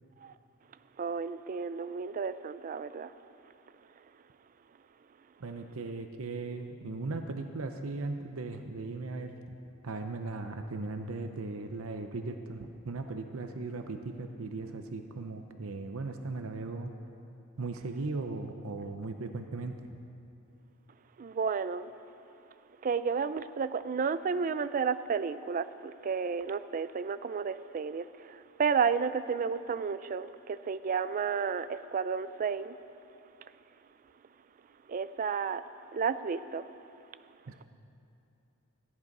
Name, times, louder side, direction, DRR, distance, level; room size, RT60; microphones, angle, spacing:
voice 1, 1.0-3.1 21.2-21.9 22.8-32.8 34.9-35.6 35.9-36.7, right 6 dB, 40° right, 0.4 m, -32 dB
voice 2, 5.4-9.3 9.8-16.9 17.6-19.9 37.5-37.6, right 3 dB, 70° right, 0.7 m, -38 dB
14.5 x 10.5 x 5.3 m
head